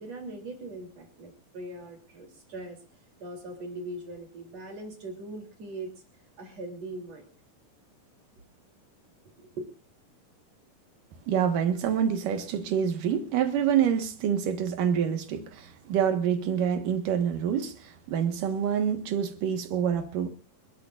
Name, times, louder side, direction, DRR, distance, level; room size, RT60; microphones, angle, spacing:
voice 1, 0.0-2.8 3.2-5.9 6.4-7.2 9.4-9.7, right 2 dB, 50° right, 4.2 m, -40 dB
voice 2, 11.3-20.3, right 8 dB, 70° right, 3.0 m, -27 dB
29.0 x 13.0 x 2.5 m
omnidirectional pair, 4.0 m